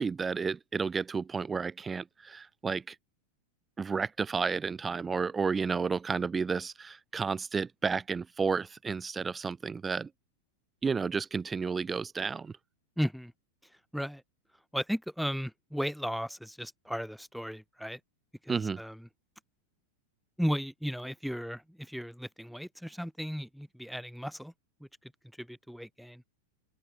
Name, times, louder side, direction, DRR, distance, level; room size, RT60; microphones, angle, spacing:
voice 1, 0.0-2.9 3.8-10.1 10.8-12.5 18.5-18.8, right 5 dB, 15° right, 1.1 m, -31 dB
voice 2, 13.0-13.3 13.9-14.2 14.7-18.0 18.4-19.1 20.4-24.5 25.0-25.1 25.4-26.2, equal, ahead, 5.6 m, -35 dB
open air
figure-of-eight pair, 90°, 0 cm